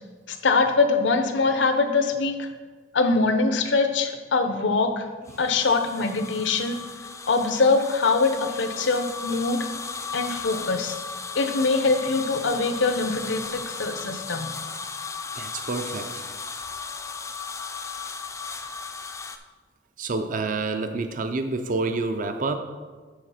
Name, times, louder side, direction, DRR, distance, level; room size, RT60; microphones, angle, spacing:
voice 1, 0.3-2.5 2.9-5.1 5.4-6.8 7.3-9.6 10.1-11.0 11.3-14.5, left 3 dB, 85° left, 7 dB, 0.7 m, -23 dB
sound 1, 5.3-19.4, left 5 dB, 15° left, 0.4 m, -36 dB
voice 2, 15.4-16.1 20.0-22.6, right 3 dB, 45° right, 7 dB, 0.5 m, -28 dB
7.6 x 4.0 x 5.7 m, 1.4 s
head